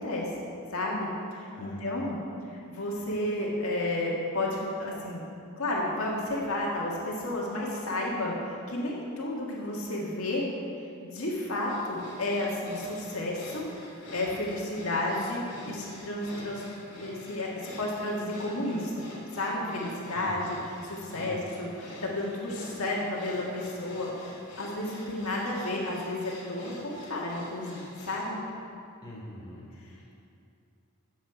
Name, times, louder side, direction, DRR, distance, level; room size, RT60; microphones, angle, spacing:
voice 1, 0.0-2.2 2.5-5.3 5.6-10.4 11.0-13.7 14.1-16.7 17.0-19.0 19.3-20.6 20.8-24.3 24.6-28.4, left 1 dB, 70° left, -4 dB, 1.9 m, -32 dB
voice 2, 1.5-2.1 20.1-20.4 21.0-21.4 29.0-29.7, equal, 20° left, -6 dB, 2.7 m, -43 dB
sound 1, 11.7-28.3, left 1 dB, 50° left, 2.9 m, -47 dB
14.5 x 7.6 x 5.0 m, 2.5 s
head